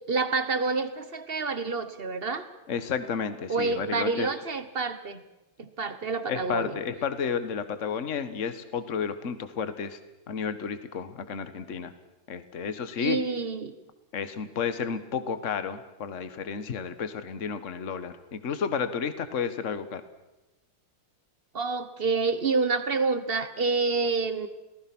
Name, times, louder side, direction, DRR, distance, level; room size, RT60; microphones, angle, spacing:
voice 1, 0.1-2.5 3.5-5.2 5.6-6.7 13.0-13.7 21.5-24.5, right 4 dB, 30° right, 11 dB, 1.3 m, -28 dB
voice 2, 2.7-4.3 6.3-10.0 10.3-11.9 12.3-13.2 14.1-20.0, left 6 dB, 40° left, 11 dB, 1.6 m, -32 dB
29.5 x 19.0 x 6.1 m, 1.0 s
omnidirectional pair, 2.3 m